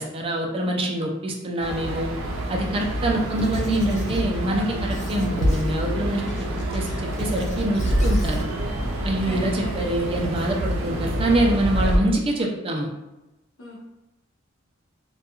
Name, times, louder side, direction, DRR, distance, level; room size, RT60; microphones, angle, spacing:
voice 1, 0.0-2.1 2.5-6.2 6.7-8.5 9.0-12.9, right 1 dB, 30° right, 0 dB, 0.4 m, -25 dB
sound 1, 1.6-12.0, right 1 dB, 85° right, 0.5 m, -26 dB
Squeak / Writing, 3.3-4.3 4.9-5.8 6.3-8.5, left 1 dB, 40° left, 0.4 m, -38 dB
voice 2, 9.2-9.8 13.6-13.8, left 1 dB, 75° left, -3 dB, 0.8 m, -39 dB
2.2 x 2.2 x 2.8 m, 0.97 s
head